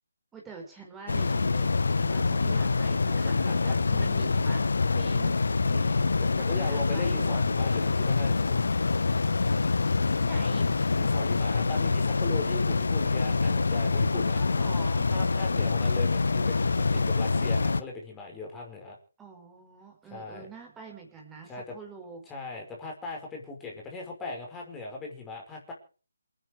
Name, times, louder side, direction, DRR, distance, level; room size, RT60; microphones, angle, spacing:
voice 1, 0.3-4.6 4.9-5.3 6.5-7.4 10.2-10.8 14.3-15.1 19.2-22.2, right 4 dB, 10° right, 1 dB, 5.0 m, -45 dB
sound 1, 1.1-17.8, left 4 dB, 65° left, 1.5 m, -25 dB
voice 2, 3.1-3.8 5.6-8.6 11.0-14.4 15.1-19.0 20.0-20.5 21.5-21.7 22.3-25.7, left 3 dB, 10° left, 0 dB, 5.6 m, -39 dB
27.5 x 10.5 x 4.8 m, 0.39 s
figure-of-eight pair, 150°, 0 cm